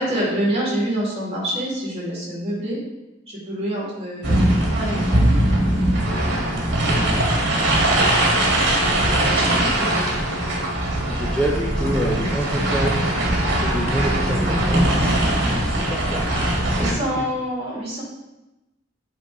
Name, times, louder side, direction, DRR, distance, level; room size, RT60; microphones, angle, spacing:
voice 1, 0.0-2.8 3.3-5.2 7.8-8.0 9.0-10.0 14.9-15.2 16.8-18.0, right 1 dB, 30° right, -5 dB, 2.7 m, -27 dB
sound 1, 4.2-16.9, right 1 dB, 60° right, 1.6 m, -20 dB
voice 2, 6.9-7.3 11.1-13.1 13.6-17.3, right 1 dB, 5° left, -3 dB, 0.6 m, -28 dB
8.2 x 4.7 x 3.9 m, 0.98 s
head